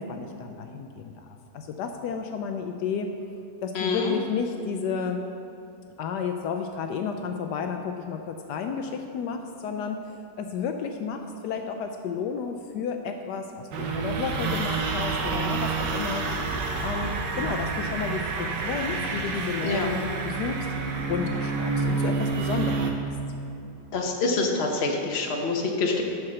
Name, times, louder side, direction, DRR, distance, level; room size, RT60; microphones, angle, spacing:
voice 1, 0.0-3.1 3.6-5.2 6.0-16.3 16.8-20.7 21.1-23.0, left 6 dB, 75° left, 5 dB, 1.1 m, -32 dB
voice 2, 3.7-4.1 19.6-19.9 23.9-26.0, left 3 dB, 45° left, 1 dB, 1.1 m, -26 dB
sound 1, 13.7-22.9, right 4 dB, 80° right, 1.5 m, -28 dB
11.5 x 4.8 x 6.3 m, 2.8 s
omnidirectional pair, 1.8 m